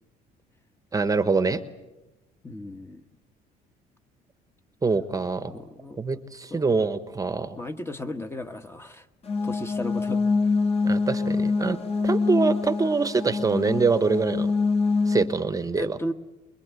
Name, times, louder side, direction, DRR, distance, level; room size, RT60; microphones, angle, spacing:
voice 1, 0.9-1.6 4.8-5.5 6.0-7.6 10.8-11.8 12.0-14.5 15.1-16.0, right 4 dB, 20° right, 12 dB, 1.0 m, -24 dB
voice 2, 2.4-3.0 5.5-6.0 6.5-6.7 7.6-9.0 9.4-10.2 15.8-16.1, left 1 dB, 15° left, 8 dB, 1.2 m, -35 dB
sound 1, 9.2-15.2, left 4 dB, 35° left, 2.1 m, -25 dB
24.5 x 22.0 x 8.2 m, 1.0 s
cardioid pair, 110°, 17 cm